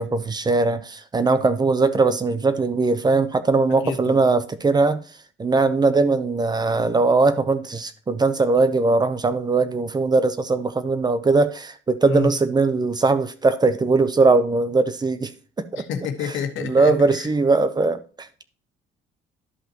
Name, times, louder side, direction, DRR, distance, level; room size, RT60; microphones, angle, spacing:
voice 1, 0.0-5.0 5.4-15.3 15.6-15.8 16.6-18.3, right 3 dB, 20° right, 0.6 m, -20 dB
voice 2, 3.8-4.3 12.1-12.3 15.7-17.3, left 7 dB, 75° left, 1.4 m, -29 dB
12.5 x 5.5 x 2.9 m
cardioid pair, 130°, 20 cm